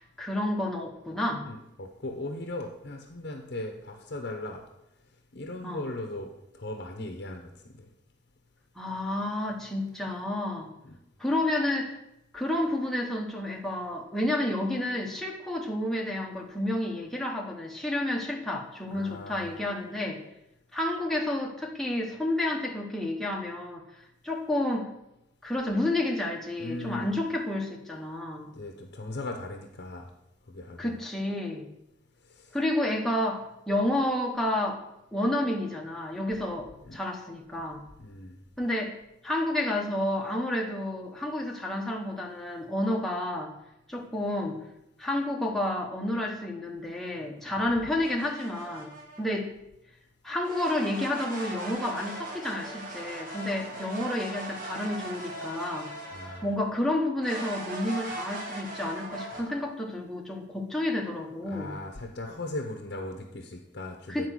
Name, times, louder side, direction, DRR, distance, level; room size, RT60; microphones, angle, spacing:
voice 1, 0.0-1.5 5.6-5.8 8.8-10.7 11.2-12.0 12.3-20.2 20.7-23.8 24.2-24.9 25.4-28.5 30.8-31.7 32.5-34.8 35.1-37.8 38.6-38.9 39.2-43.5 43.9-44.6 45.0-48.9 49.2-49.5 50.2-55.9 56.4-61.8 64.1-64.3, left 1 dB, ahead, -1 dB, 0.9 m, -30 dB
voice 2, 1.5-4.6 5.3-7.9 10.8-11.0 18.9-19.5 26.6-27.1 28.5-30.1 30.5-31.0 32.3-32.6 36.9-37.0 38.0-38.4 56.1-56.5 59.3-59.5 61.5-64.3, left 2 dB, 55° left, 2 dB, 0.8 m, -38 dB
sound 1, 48.0-49.2 50.4-56.5 57.2-59.4, right 1 dB, 45° right, 1.9 m, -39 dB
9.5 x 4.5 x 6.2 m, 0.88 s
head